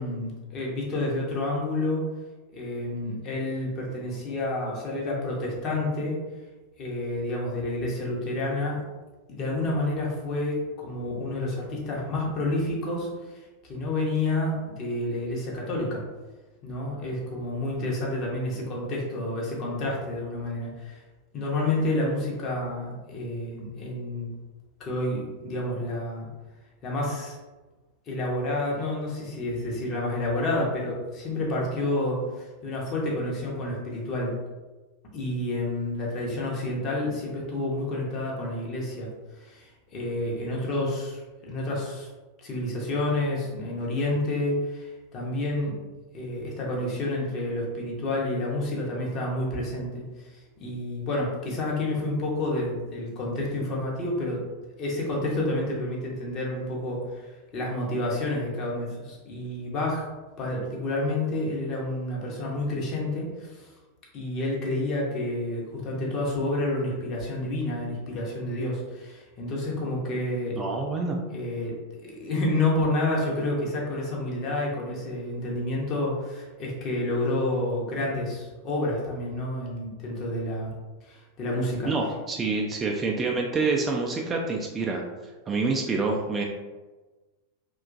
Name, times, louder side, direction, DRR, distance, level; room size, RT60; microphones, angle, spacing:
voice 1, 0.0-2.1 2.5-6.2 6.8-8.8 9.3-16.0 16.6-21.0 21.3-24.3 24.8-26.3 26.8-27.4 28.1-34.4 35.1-39.1 39.4-42.1 42.4-45.8 46.1-54.4 54.8-60.1 60.4-63.7 64.1-70.6 71.3-80.7 81.0-81.9, left 1 dB, 35° left, -3 dB, 0.8 m, -29 dB
voice 2, 70.5-71.2 81.9-85.0 85.5-86.4, right 3 dB, 20° right, 0 dB, 0.3 m, -27 dB
2.8 x 2.3 x 2.5 m, 1.2 s
figure-of-eight pair, 90°, 0 cm